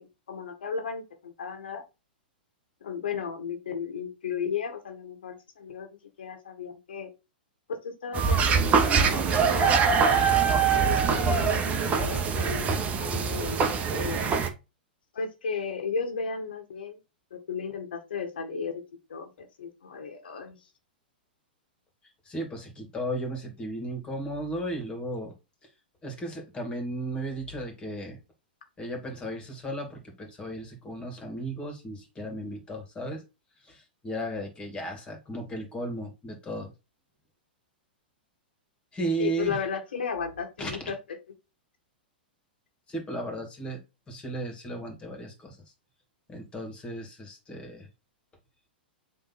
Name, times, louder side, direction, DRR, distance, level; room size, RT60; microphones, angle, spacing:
voice 1, 0.0-1.8 2.8-7.1 7.8-10.2 10.7-14.3 15.1-17.0 17.3-18.8 19.1-20.6 39.2-41.0, left 6 dB, 75° left, 6 dB, 1.7 m, -35 dB
sound 1, 8.1-14.5, right 6 dB, 25° right, 1.1 m, -23 dB
voice 2, 22.2-25.3 26.0-28.2 28.8-33.2 33.6-36.7 38.9-39.6 40.6-40.7 42.9-43.8 44.1-45.6 46.3-47.9, right 1 dB, 20° left, 3 dB, 2.6 m, -35 dB
7.7 x 3.5 x 4.2 m, 0.27 s
hypercardioid pair, 110°, 5 cm